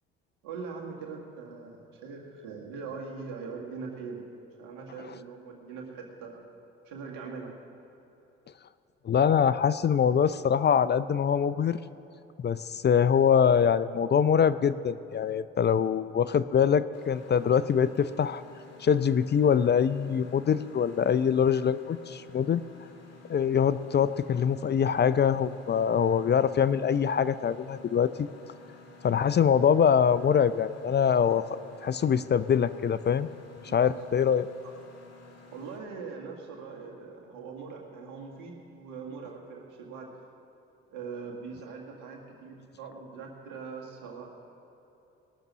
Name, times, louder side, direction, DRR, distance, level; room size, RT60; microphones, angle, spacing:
voice 1, 0.4-4.3 4.6-6.4 6.9-7.6 33.7-34.0 35.5-40.1 40.9-44.4, right 5 dB, 85° right, 0 dB, 2.0 m, -41 dB
voice 2, 9.0-11.8 12.4-18.4 18.8-22.6 23.3-28.3 29.0-33.3 33.7-34.5, left 7 dB, 35° left, 16 dB, 0.5 m, -24 dB
Mechanisms, 16.9-35.8, left 4 dB, 55° left, 2.0 m, -53 dB
20.0 x 6.7 x 6.2 m, 3.0 s
supercardioid pair, 60°, 31 cm